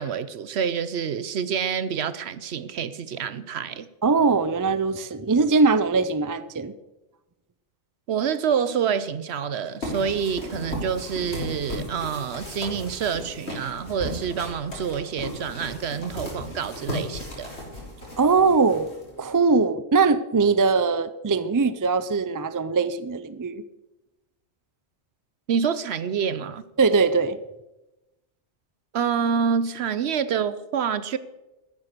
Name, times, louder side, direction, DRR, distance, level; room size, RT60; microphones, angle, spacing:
voice 1, 0.0-3.9 8.1-17.5 25.5-26.6 28.9-31.2, right 7 dB, 70° right, 15 dB, 0.9 m, -27 dB
voice 2, 4.0-6.7 18.2-18.9 19.2-23.6 26.8-27.4, right 4 dB, 35° right, 13 dB, 0.3 m, -21 dB
sound 1, 9.8-19.3, left 1 dB, 70° left, 4.0 m, -36 dB
13.0 x 10.5 x 6.7 m, 1.0 s
omnidirectional pair, 1.2 m